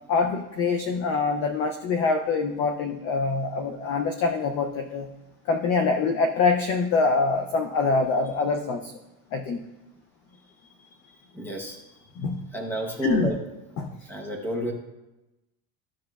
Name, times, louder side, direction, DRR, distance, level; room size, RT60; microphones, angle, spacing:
voice 1, 0.1-5.1 5.5-8.9 9.3-9.6 12.2-12.4 13.0-13.3 13.8-13.9, left 4 dB, 35° left, 5 dB, 0.4 m, -25 dB
voice 2, 11.3-11.8 12.5-13.4 14.1-14.7, right 1 dB, 5° left, 1 dB, 0.7 m, -30 dB
13.0 x 6.2 x 2.3 m, 1.0 s
cardioid pair, 170°, 43 cm